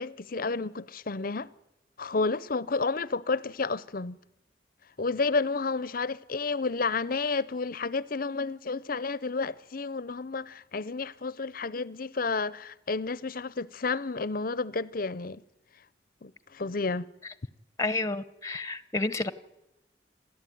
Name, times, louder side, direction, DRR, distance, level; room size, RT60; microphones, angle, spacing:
voice 1, 0.0-1.5 2.0-4.2 5.0-15.4 16.2-17.1, left 4 dB, 50° left, 0.7 m, -31 dB
voice 2, 17.8-19.3, left 2 dB, 20° left, 1.0 m, -30 dB
28.0 x 13.5 x 9.4 m
head